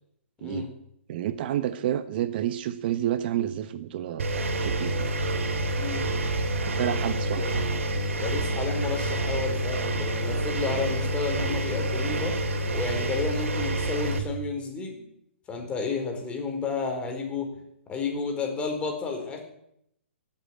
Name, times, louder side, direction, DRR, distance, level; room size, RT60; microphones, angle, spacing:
voice 1, 1.1-5.1 6.5-7.7, right 11 dB, 45° right, 13 dB, 1.0 m, -30 dB
Engine, 4.2-14.2, right 1 dB, 75° right, 3.3 m, -28 dB
voice 2, 5.8-6.1 6.7-7.0 7.4-7.5 8.2-12.4 12.7-14.9 15.5-17.5 17.9-19.4, left 4 dB, 15° left, 2 dB, 4.4 m, -31 dB
16.5 x 8.3 x 10.0 m, 0.75 s
hypercardioid pair, 135°, 7 cm